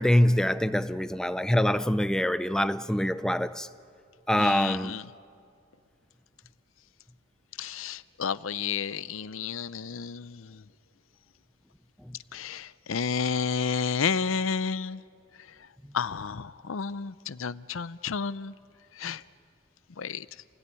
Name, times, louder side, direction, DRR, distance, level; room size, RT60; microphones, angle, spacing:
voice 1, 0.0-3.7 4.3-4.9, left 1 dB, 5° left, 0.5 m, -24 dB
voice 2, 4.4-5.1 7.6-10.6 12.3-15.0 15.9-18.5 19.0-19.2 20.0-20.3, left 6 dB, 85° left, 0.6 m, -31 dB
29.0 x 18.0 x 9.9 m
head